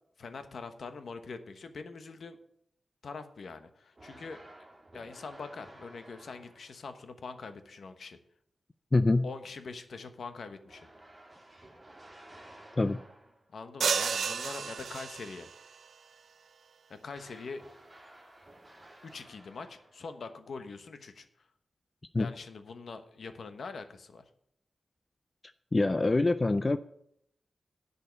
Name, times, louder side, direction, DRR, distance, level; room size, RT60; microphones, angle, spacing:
voice 1, 0.2-2.4 3.0-4.4 4.9-8.2 9.2-10.9 13.5-15.5 16.9-17.6 19.0-21.5 22.2-24.2, left 4 dB, 70° left, 8 dB, 1.1 m, -43 dB
sound 1, 3.9-6.9 10.7-13.6 17.1-20.2, right 1 dB, 20° right, 2.5 m, -54 dB
voice 2, 8.9-9.3 12.8-13.0 22.1-22.3 25.7-26.8, left 2 dB, 30° left, 12 dB, 0.4 m, -25 dB
sound 2, 13.8-15.6, right 6 dB, 90° right, 0.5 m, -31 dB
10.5 x 5.6 x 8.1 m, 0.72 s
wide cardioid pair, 100°, 0 cm